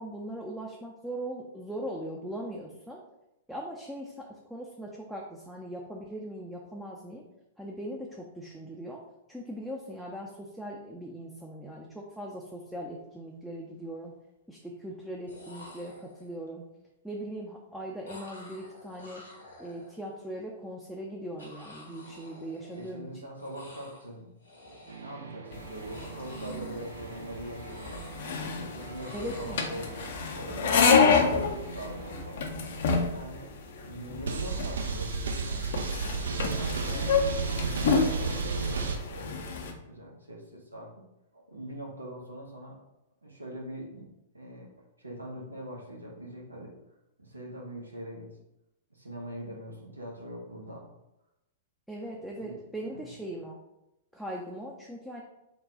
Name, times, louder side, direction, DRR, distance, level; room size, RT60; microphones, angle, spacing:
voice 1, 0.0-3.0 3.5-7.2 7.6-9.0 9.3-14.1 14.5-16.6 17.0-19.2 19.6-23.1 29.1-29.8 51.9-53.6 54.1-55.2, right 1 dB, ahead, -2 dB, 0.4 m, -40 dB
sound 1, 12.8-13.0 13.4-14.0 15.0-15.1 15.3-16.5 18.1-20.3 21.4-23.1 23.4-24.1 24.4-25.2 25.6-27.3 27.6-28.6 29.0-30.5, left 2 dB, 80° left, 1.0 m, -51 dB
voice 2, 22.7-24.4 24.6-28.0 28.5-32.4 33.1-33.5 33.8-35.9 36.4-39.6 39.9-41.1 41.3-42.8 43.2-44.1 44.3-44.7 45.0-46.7 47.2-48.3 48.9-50.9 52.1-52.6 52.9-53.1, equal, 85° right, -1 dB, 0.9 m, -42 dB
sound 2, 24.9-33.4 34.3-39.0, right 4 dB, 65° right, 0.4 m, -35 dB
sound 3, 25.5-39.7, left 5 dB, 55° left, 0.5 m, -29 dB
3.8 x 2.2 x 3.6 m, 0.90 s
figure-of-eight pair, 105°, 0 cm